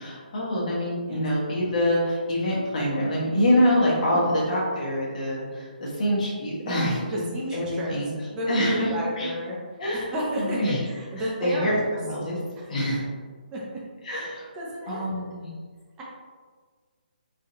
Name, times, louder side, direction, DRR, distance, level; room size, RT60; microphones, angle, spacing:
voice 1, 0.0-7.2 7.5-8.1 8.5-8.9 9.2-9.3 9.8-10.1 10.4-10.8 11.2-12.4 12.7-13.0 14.0-14.5 14.9-15.5, equal, 50° left, -5 dB, 1.2 m, -25 dB
voice 2, 6.6-8.0 8.3-9.6 9.9-11.7 13.5-13.8 14.1-14.2 14.6-15.2 16.0-16.1, equal, 15° right, -5 dB, 0.7 m, -31 dB
3.7 x 2.6 x 2.8 m, 1.6 s
hypercardioid pair, 155°, 5 cm